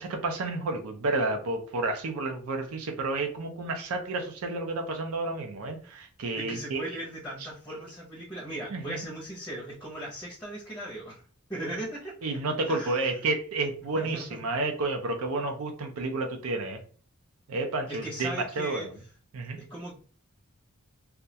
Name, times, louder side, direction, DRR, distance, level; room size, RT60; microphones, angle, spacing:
voice 1, 0.0-7.0 8.7-9.0 12.2-16.8 17.5-18.9 19.3-19.6, right 3 dB, 80° right, 4 dB, 0.4 m, -31 dB
voice 2, 6.3-11.2 11.5-12.1 12.6-13.1 13.9-14.5 17.9-18.9 19.6-19.9, right 1 dB, 10° left, -3 dB, 0.5 m, -38 dB
2.3 x 2.1 x 2.7 m, 0.42 s
head